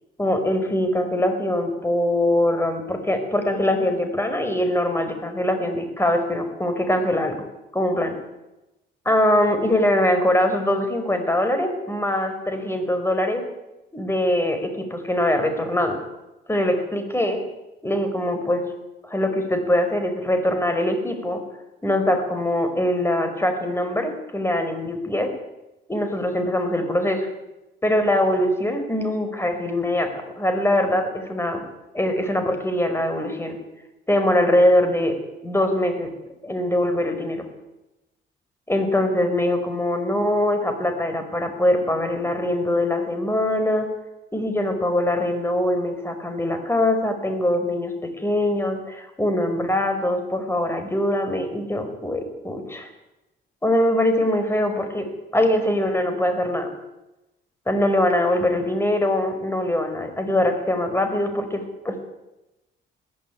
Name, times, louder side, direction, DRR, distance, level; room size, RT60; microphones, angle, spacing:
voice 1, 0.2-7.4 7.7-8.2 9.1-13.4 13.9-16.0 16.5-17.4 17.8-18.6 19.0-21.4 21.8-25.3 25.9-27.3 27.8-31.6 31.9-33.6 34.1-35.1 35.4-36.1 36.4-37.4 38.7-43.9 44.3-52.9 53.6-55.1 55.3-56.7 57.7-62.2, left 1 dB, 10° left, 7 dB, 5.5 m, -22 dB
21.5 x 15.0 x 9.6 m, 0.98 s
cardioid pair, 90°, 20 cm